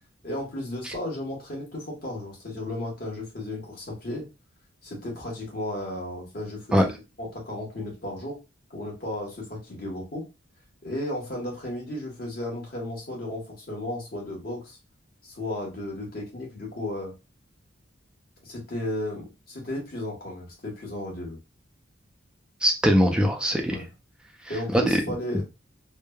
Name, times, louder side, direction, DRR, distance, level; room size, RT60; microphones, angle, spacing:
voice 1, 0.2-4.2 4.8-6.9 7.2-8.4 8.7-10.2 10.8-14.8 15.2-17.1 18.4-21.4 23.7-23.9 24.5-25.4, left 1 dB, 50° left, -1 dB, 1.1 m, -34 dB
voice 2, 22.6-23.8 24.7-25.0 25.3-25.4, equal, 5° right, 1 dB, 0.4 m, -21 dB
3.1 x 2.1 x 2.2 m, 0.27 s
head